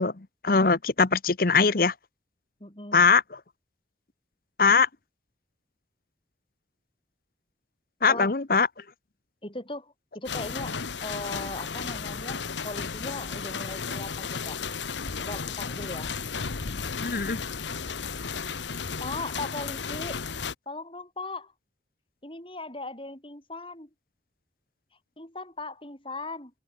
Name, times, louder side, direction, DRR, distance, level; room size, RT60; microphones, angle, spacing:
voice 1, 0.0-1.9 2.9-3.2 4.6-4.9 8.0-8.7 17.0-17.4, left 5 dB, 55° left, 1.0 m, -21 dB
voice 2, 2.6-3.1 8.1-8.3 9.4-14.6 15.2-16.1 19.0-20.2 20.7-21.5 22.2-23.9 25.2-26.5, left 2 dB, 30° left, 4.6 m, -38 dB
sound 1, 10.2-20.5, left 5 dB, 85° left, 1.1 m, -34 dB
open air
head